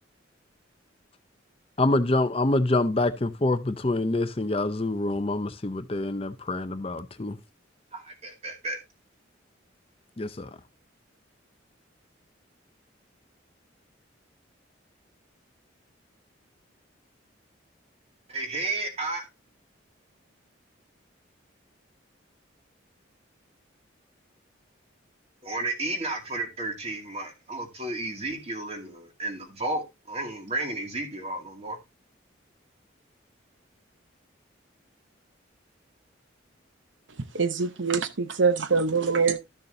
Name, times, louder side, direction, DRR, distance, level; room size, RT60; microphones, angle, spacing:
voice 1, 1.8-7.4 10.2-10.5, left 2 dB, 30° left, 0.6 m, -26 dB
voice 2, 7.9-8.8 18.3-19.2 25.4-31.8, right 2 dB, 30° right, 2.3 m, -32 dB
voice 3, 37.3-39.4, right 5 dB, 70° right, 0.8 m, -24 dB
13.0 x 6.8 x 2.6 m
head